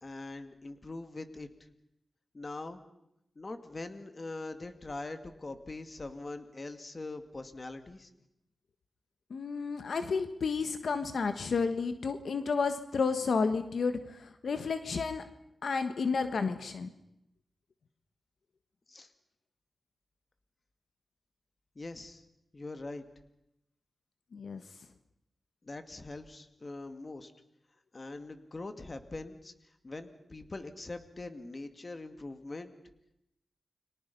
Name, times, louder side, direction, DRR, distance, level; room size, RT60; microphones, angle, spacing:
voice 1, 0.0-1.5 2.3-2.8 3.4-8.1 18.9-19.1 21.8-22.2 22.5-23.0 25.6-27.3 27.9-29.5 29.8-32.8, left 2 dB, 35° left, 8 dB, 2.2 m, -42 dB
voice 2, 9.3-15.2 15.6-16.9 24.3-24.6, left 5 dB, 75° left, 8 dB, 1.5 m, -31 dB
30.0 x 23.5 x 5.5 m, 0.82 s
wide cardioid pair, 95°, 0 cm